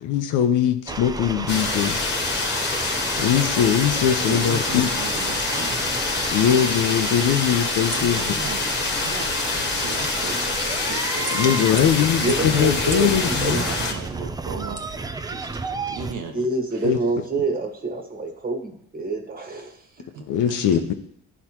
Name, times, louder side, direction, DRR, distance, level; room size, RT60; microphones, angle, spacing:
voice 1, 0.0-2.0 3.2-4.9 6.3-8.2 11.3-13.6 16.8-17.0 20.3-20.9, left 9 dB, 75° left, 8 dB, 0.8 m, -21 dB
sound 1, 0.9-16.1, right 3 dB, 15° right, 0.4 m, -32 dB
sound 2, 1.5-13.9, left 3 dB, 35° left, 1.4 m, -26 dB
voice 2, 4.3-6.0 7.9-8.7 9.0-9.3 9.7-16.9 20.1-20.9, right 5 dB, 70° right, 4 dB, 1.2 m, -37 dB
sound 3, 5.7-15.6, right 4 dB, 50° right, 1.5 m, -44 dB
voice 3, 12.2-13.1 13.4-13.6 16.3-20.1, right 3 dB, 30° right, 3 dB, 1.5 m, -27 dB
11.0 x 4.2 x 2.9 m, 0.71 s
cardioid pair, 85°, 31 cm